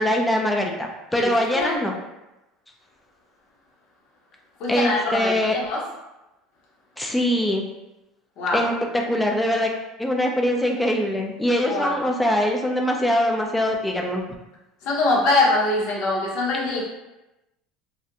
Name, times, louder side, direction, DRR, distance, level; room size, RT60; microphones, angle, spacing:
voice 1, 0.0-1.9 4.7-5.6 7.0-7.6 8.5-9.7 10.0-14.2, equal, 5° left, 1 dB, 0.3 m, -23 dB
voice 2, 1.1-1.9 4.6-5.8 8.4-8.7 11.6-12.0 14.8-16.8, left 2 dB, 60° left, -4 dB, 0.8 m, -23 dB
2.4 x 2.1 x 2.8 m, 0.98 s
cardioid pair, 145°, 0 cm